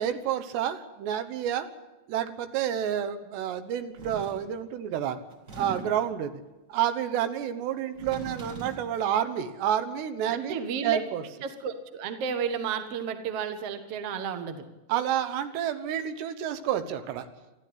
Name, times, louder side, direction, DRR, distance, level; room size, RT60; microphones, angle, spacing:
voice 1, 0.0-1.7 2.1-5.2 5.5-6.3 6.7-11.2 14.9-17.3, right 10 dB, 85° right, 10 dB, 3.4 m, -29 dB
sound 1, 4.0-4.5 5.3-6.1 7.8-8.9, right 3 dB, 30° right, 1.4 m, -40 dB
voice 2, 10.3-11.0 11.4-14.6, right 7 dB, 55° right, 8 dB, 1.7 m, -32 dB
21.5 x 14.0 x 8.8 m, 1.1 s
omnidirectional pair, 4.8 m